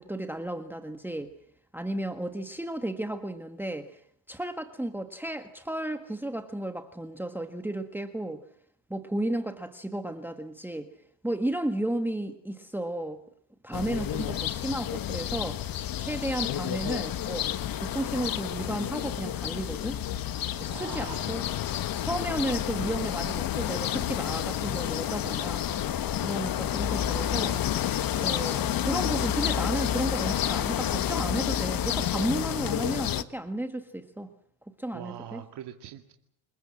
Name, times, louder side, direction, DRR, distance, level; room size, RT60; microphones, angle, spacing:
voice 1, 0.0-1.3 1.7-4.0 4.3-8.4 8.9-10.9 11.2-13.2 13.6-15.6 16.0-17.5 17.7-20.0 20.6-21.4 22.0-25.7 26.2-27.6 28.2-34.3 34.8-35.4, right 1 dB, 5° right, 8 dB, 1.6 m, -33 dB
sound 1, 13.7-33.2, left 10 dB, 45° left, 1.5 m, -30 dB
voice 2, 20.7-21.3 34.9-36.1, right 11 dB, 55° right, 4 dB, 2.3 m, -42 dB
27.0 x 21.5 x 7.6 m, 0.67 s
hypercardioid pair, 80°, 48 cm